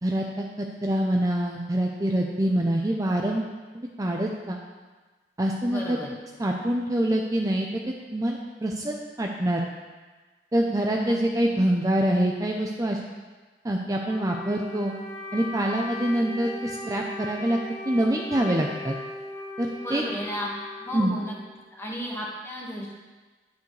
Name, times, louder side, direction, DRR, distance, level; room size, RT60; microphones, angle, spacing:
voice 1, 0.0-3.5 3.7-4.6 5.4-6.0 6.4-7.8 8.1-9.7 10.5-13.0 13.6-14.9 15.3-17.6 17.9-18.9 19.6-20.0 20.9-21.1, right 1 dB, 20° right, 0 dB, 0.6 m, -25 dB
voice 2, 5.7-6.1 11.0-11.2 19.8-20.5 20.7-21.4 21.7-22.9, equal, 15° left, -4 dB, 1.7 m, -33 dB
Wind instrument woodwind instrument, 14.0-21.6, left 2 dB, 40° left, 1.7 m, -38 dB
11.0 x 9.3 x 3.3 m, 1.3 s
head